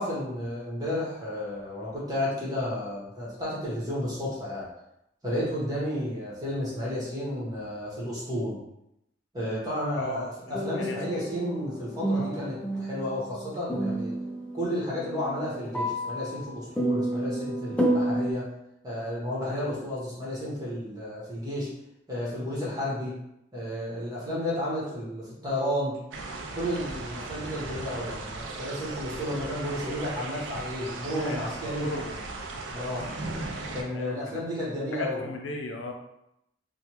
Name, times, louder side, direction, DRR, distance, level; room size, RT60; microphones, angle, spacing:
voice 1, 0.0-4.7 5.2-8.6 9.3-14.1 14.5-18.5 18.8-21.7 22.1-23.1 23.5-26.0 26.5-31.9 32.7-33.1 33.7-35.3, left 1 dB, 20° right, -7 dB, 1.0 m, -32 dB
voice 2, 10.0-11.3 12.1-12.4 31.1-31.5 31.8-32.2 33.0-33.1 33.9-34.4 34.9-35.9, left 1 dB, 85° left, 3 dB, 0.5 m, -37 dB
sound 1, 10.5-18.3, right 1 dB, 5° left, 0.3 m, -30 dB
sound 2, 26.1-33.8, right 3 dB, 85° right, 0.4 m, -37 dB
3.3 x 2.2 x 2.9 m, 0.83 s
head